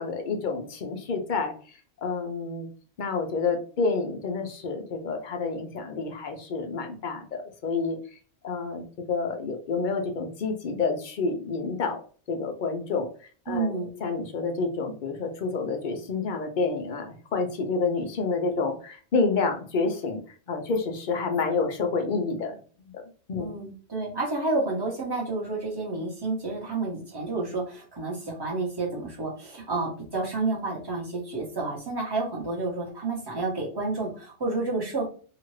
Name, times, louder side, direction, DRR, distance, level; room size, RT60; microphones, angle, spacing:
voice 1, 0.0-1.5 2.0-2.7 3.0-8.0 8.4-12.0 12.3-13.1 13.5-20.2 20.5-22.6 22.9-23.0 23.3-23.5, left 4 dB, 50° left, 4 dB, 0.6 m, -29 dB
voice 2, 13.5-13.9 23.4-35.1, right 3 dB, 20° right, -2 dB, 1.0 m, -30 dB
2.8 x 2.5 x 3.1 m, 0.41 s
omnidirectional pair, 1.2 m